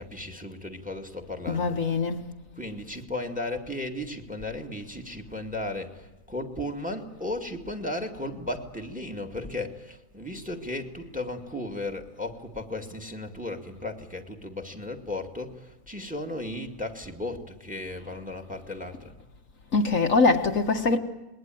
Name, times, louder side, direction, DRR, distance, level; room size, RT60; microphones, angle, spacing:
voice 1, 0.0-1.8 2.6-19.2, left 1 dB, 5° right, 2.1 m, -35 dB
voice 2, 1.5-2.3 19.7-21.0, left 3 dB, 55° left, 1.8 m, -23 dB
27.5 x 21.5 x 9.2 m
omnidirectional pair, 1.6 m